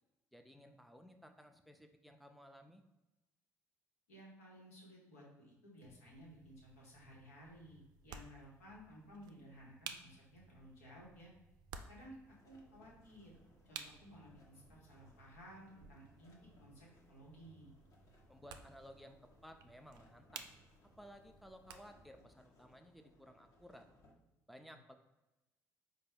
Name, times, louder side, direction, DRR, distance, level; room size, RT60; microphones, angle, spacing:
voice 1, 0.3-2.8 18.3-20.5 20.8-23.9 24.5-24.9, equal, ahead, 6 dB, 0.4 m, -57 dB
voice 2, 4.1-11.3 11.9-12.2 12.4-13.3 13.7-17.7, equal, 85° left, -4 dB, 1.0 m, -57 dB
sound 1, 5.8-22.2, right 7 dB, 60° right, 0.3 m, -56 dB
sound 2, 12.2-24.1, left 1 dB, 45° left, 0.9 m, -68 dB
4.2 x 2.2 x 3.4 m, 1.0 s
hypercardioid pair, 55°, 8 cm